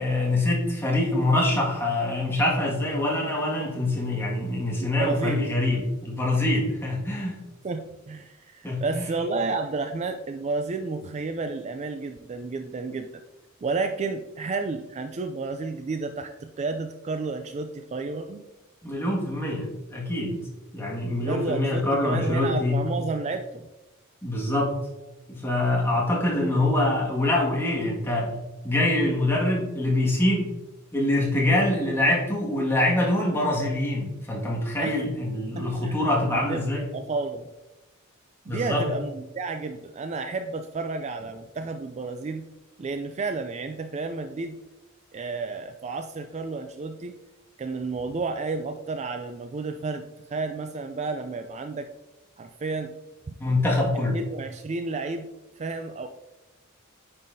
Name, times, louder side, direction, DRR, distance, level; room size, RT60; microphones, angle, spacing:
voice 1, 0.0-7.4 8.6-9.1 18.8-20.4 20.7-22.8 24.2-24.8 25.3-28.4 28.6-30.5 30.9-36.9 38.5-38.9 53.4-54.2, left 1 dB, 10° left, -4 dB, 1.8 m, -25 dB
voice 2, 4.8-5.5 7.6-13.2 13.6-18.4 21.2-23.7 34.8-35.0 35.6-36.7 36.9-37.5 38.5-42.4 42.8-44.6 45.1-47.1 47.6-51.9 52.4-52.9 53.3-53.4 54.1-55.3 55.6-56.1, right 3 dB, 35° right, 6 dB, 0.3 m, -31 dB
9.1 x 5.6 x 2.7 m, 1.0 s
head